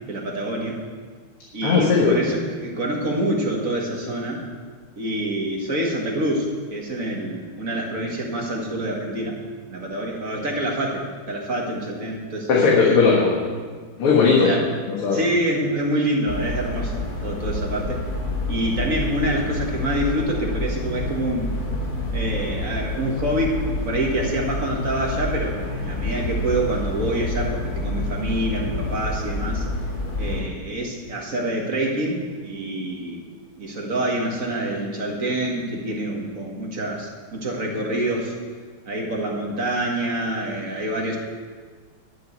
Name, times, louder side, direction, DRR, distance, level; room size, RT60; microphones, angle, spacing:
voice 1, 0.1-0.8 1.5-4.4 5.0-9.4 9.7-12.7 14.4-14.7 15.1-18.0 18.5-21.6 22.1-29.6 30.2-33.2 33.6-38.3 38.9-41.2, right 1 dB, 40° right, -1 dB, 1.8 m, -26 dB
voice 2, 1.6-2.2 12.5-13.4 14.0-14.6 15.0-15.2, left 4 dB, 90° left, -4 dB, 2.5 m, -17 dB
sound 1, 16.3-30.4, left 2 dB, 50° left, 1.8 m, -28 dB
12.5 x 6.5 x 8.0 m, 1.6 s
omnidirectional pair, 2.4 m